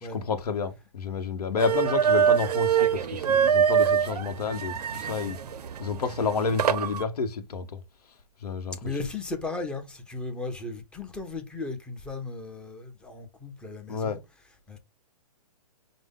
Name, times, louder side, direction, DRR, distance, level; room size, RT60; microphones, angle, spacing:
voice 1, 0.1-5.4 5.8-7.8 8.4-9.0 13.9-14.2, left 5 dB, 75° left, 0.9 m, -30 dB
sound 1, 1.6-7.0, right 8 dB, 80° right, 0.5 m, -25 dB
voice 2, 8.8-14.2 14.7-14.8, left 3 dB, 5° left, 0.6 m, -36 dB
5.1 x 2.1 x 3.6 m
hypercardioid pair, 145°, 20 cm